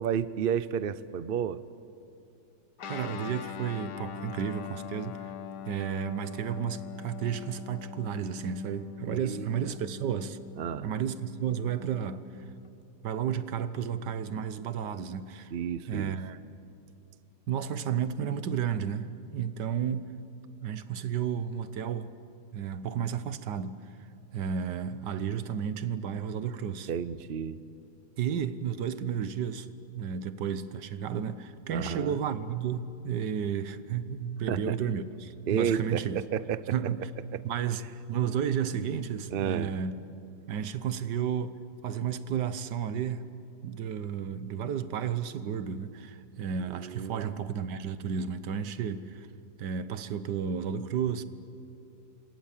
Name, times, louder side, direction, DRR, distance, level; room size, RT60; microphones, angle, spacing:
voice 1, 0.0-1.6 9.1-9.5 10.6-10.9 15.5-16.2 26.9-27.6 31.7-32.2 34.5-34.8 35.5-36.6 39.3-39.7 46.6-47.2, right 8 dB, 55° right, 0.6 m, -31 dB
Guitar, 2.8-12.7, left 7 dB, 75° left, 1.7 m, -43 dB
voice 2, 2.8-5.3 5.7-10.4 10.8-12.4 13.0-15.5 15.9-16.4 17.5-20.1 20.6-22.1 22.5-23.8 24.3-26.9 28.2-29.7 29.9-36.2 36.7-37.1 37.4-39.9 40.5-43.3 43.6-49.3 49.6-51.3, right 8 dB, 80° right, 1.6 m, -32 dB
30.0 x 26.0 x 7.4 m
omnidirectional pair, 1.8 m